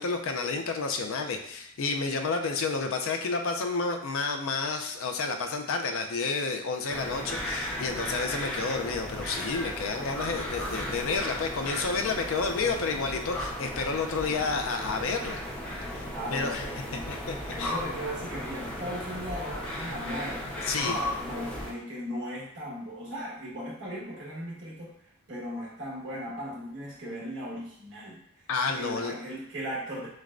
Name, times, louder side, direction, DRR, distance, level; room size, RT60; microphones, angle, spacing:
voice 1, 0.0-15.4 15.9-16.7 17.1-17.7 20.7-21.0 28.5-29.1, left 4 dB, 60° left, 5 dB, 0.4 m, -30 dB
sound 1, 6.9-21.7, left 1 dB, 5° left, 0.6 m, -35 dB
voice 2, 16.1-17.1 17.5-30.1, equal, 55° right, -5 dB, 1.4 m, -38 dB
6.4 x 2.2 x 2.5 m, 0.77 s
head